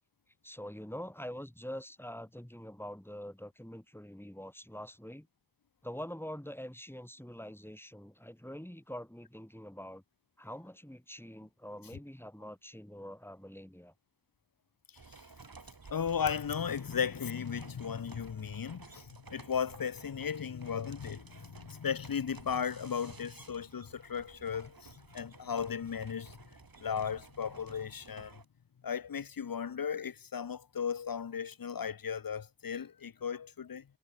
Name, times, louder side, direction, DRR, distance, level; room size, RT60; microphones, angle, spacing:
voice 1, 0.4-5.3 5.8-10.0 10.4-13.9, equal, 5° left, 3.7 m, -45 dB
sound 1, 14.9-28.4, right 4 dB, 90° right, 6.1 m, -54 dB
voice 2, 15.9-26.3 26.8-28.4 28.8-33.8, left 7 dB, 80° left, 0.8 m, -36 dB
wide cardioid pair, 50°, 34 cm